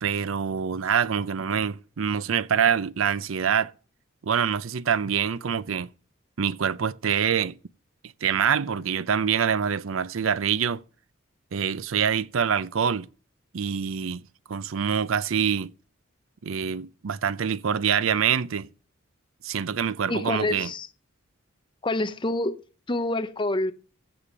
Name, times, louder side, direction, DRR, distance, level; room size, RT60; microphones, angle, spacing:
voice 1, 0.0-3.7 4.2-5.9 6.4-7.6 8.2-10.8 11.5-13.1 13.5-14.2 14.5-15.7 16.4-18.7 19.4-20.7, right 7 dB, 90° right, 0.5 m, -25 dB
voice 2, 20.1-20.9 21.8-22.6 22.9-23.7, left 2 dB, 25° left, 0.6 m, -27 dB
15.0 x 5.1 x 7.2 m
head